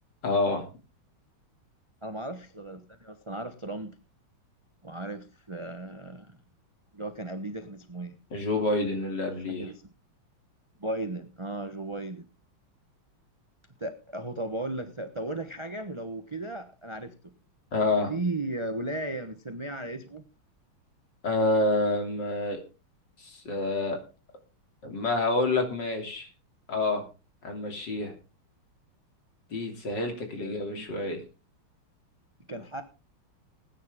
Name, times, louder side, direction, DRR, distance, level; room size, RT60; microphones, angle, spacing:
voice 1, 0.2-0.7 8.3-9.7 17.7-18.1 21.2-22.6 23.2-24.0 24.8-26.3 26.7-27.0 27.4-28.1 29.5-31.2, left 2 dB, 55° left, 4 dB, 3.6 m, -28 dB
voice 2, 2.0-3.9 4.8-6.4 6.9-8.2 9.5-9.8 10.8-12.2 13.8-17.3 18.1-20.2 30.4-30.9 32.5-32.8, right 2 dB, 25° right, 8 dB, 0.7 m, -36 dB
19.0 x 9.8 x 3.6 m, 0.32 s
omnidirectional pair, 2.3 m